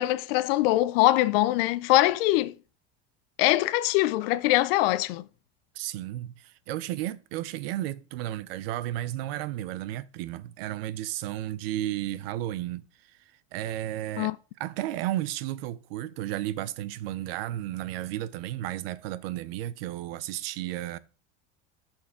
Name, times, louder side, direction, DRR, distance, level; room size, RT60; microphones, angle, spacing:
voice 1, 0.0-2.5 3.4-5.2 14.2-14.4, left 16 dB, 75° left, 0.6 m, -23 dB
voice 2, 5.8-13.2 13.5-14.3 14.6-21.0, right 14 dB, 85° right, 0.7 m, -33 dB
13.0 x 4.5 x 3.7 m
cardioid pair, 170°, 29 cm